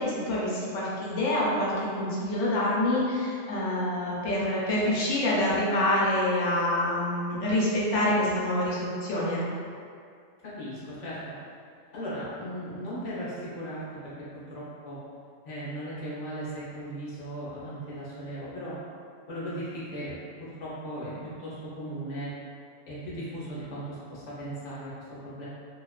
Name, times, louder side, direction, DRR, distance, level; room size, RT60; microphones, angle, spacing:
voice 1, 0.0-9.4, left 1 dB, 90° left, -6 dB, 1.0 m, -26 dB
voice 2, 10.4-11.2 11.9-14.1 14.5-15.0 15.4-18.7 19.3-20.1 20.4-21.1 21.4-22.3 22.9-25.5, right 1 dB, 40° left, -9 dB, 0.7 m, -37 dB
2.4 x 2.3 x 2.3 m, 2.2 s
omnidirectional pair, 1.3 m